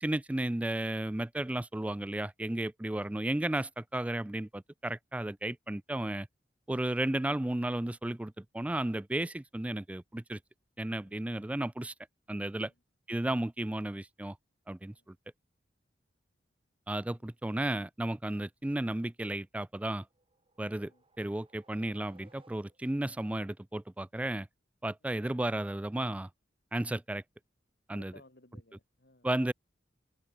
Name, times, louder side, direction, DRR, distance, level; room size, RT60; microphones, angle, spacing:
voice 1, 0.0-6.3 6.7-10.4 10.8-11.9 12.3-12.7 13.1-14.4 14.7-15.2 16.9-20.1 20.6-20.9 21.2-24.5 24.8-26.3 26.7-27.2 27.9-28.1 29.2-29.5, right 1 dB, 10° right, 0.3 m, -33 dB
sound 1, 20.0-23.1, right 2 dB, 30° right, 4.6 m, -65 dB
voice 2, 27.9-29.3, left 2 dB, 60° left, 3.4 m, -61 dB
open air
head